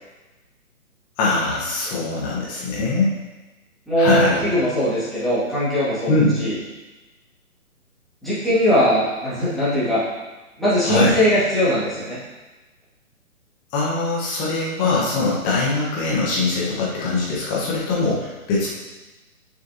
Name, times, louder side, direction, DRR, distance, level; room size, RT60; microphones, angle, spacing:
voice 1, 1.2-3.1 4.0-4.5 6.1-6.3 10.8-11.2 13.7-18.7, left 3 dB, 20° left, -5 dB, 1.5 m, -22 dB
voice 2, 3.9-6.1 6.4-6.6 8.2-10.0 10.6-12.2, equal, ahead, -13 dB, 2.4 m, -20 dB
6.9 x 6.7 x 3.0 m, 1.2 s
figure-of-eight pair, 135°, 42 cm